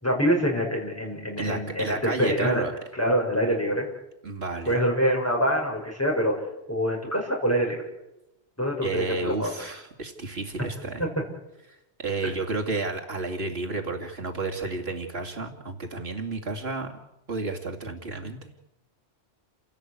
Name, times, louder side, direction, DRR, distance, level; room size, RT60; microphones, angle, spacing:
voice 1, 0.0-2.6 2.9-3.9 4.7-6.4 6.7-7.8 8.6-9.5 11.0-11.1 12.2-12.3, equal, 15° left, -1 dB, 6.0 m, -25 dB
voice 2, 1.4-2.7 4.2-4.8 8.8-11.0 12.0-16.9 17.3-18.5, right 3 dB, 70° right, 1 dB, 2.6 m, -31 dB
29.5 x 16.5 x 8.2 m, 0.91 s
omnidirectional pair, 1.1 m